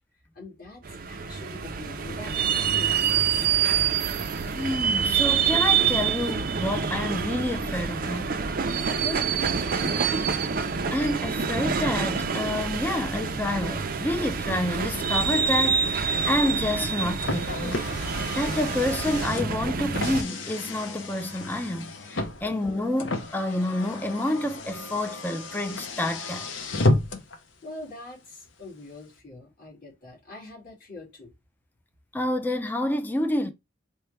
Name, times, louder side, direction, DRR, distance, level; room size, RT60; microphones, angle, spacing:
voice 1, 0.3-3.4 9.0-10.1 27.6-31.3, left 2 dB, 50° left, 2.0 m, -42 dB
sound 1, 0.8-20.2, right 6 dB, 50° right, 0.4 m, -26 dB
voice 2, 4.5-8.4 10.9-17.9 18.3-26.5 32.1-33.5, left 1 dB, 10° left, 0.4 m, -28 dB
Car, 16.8-27.4, left 2 dB, 80° left, 0.7 m, -32 dB
4.5 x 2.2 x 3.2 m
head